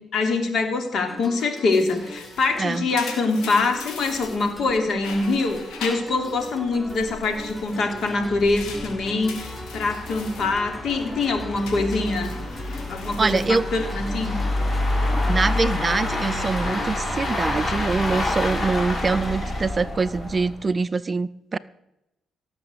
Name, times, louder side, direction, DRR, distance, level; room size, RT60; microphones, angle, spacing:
voice 1, 0.1-12.3 12.9-14.4, left 3 dB, 60° left, 5 dB, 3.3 m, -24 dB
sound 1, 1.1-19.3, equal, 10° left, 2.2 m, -41 dB
sound 2, 1.7-4.7 5.0-6.6 6.9-10.5 10.9-11.2 11.6-14.2 14.5-14.9 15.5-16.1, left 5 dB, 90° left, 3.5 m, -41 dB
sound 3, 4.6-4.7 5.1-5.2 5.5-5.6 6.3-20.7, left 1 dB, 40° left, 7.4 m, -28 dB
voice 2, 13.2-13.6 15.1-21.6, right 4 dB, 30° right, 16 dB, 0.5 m, -24 dB
17.5 x 6.9 x 8.0 m, 0.88 s
cardioid pair, 90°, 0 cm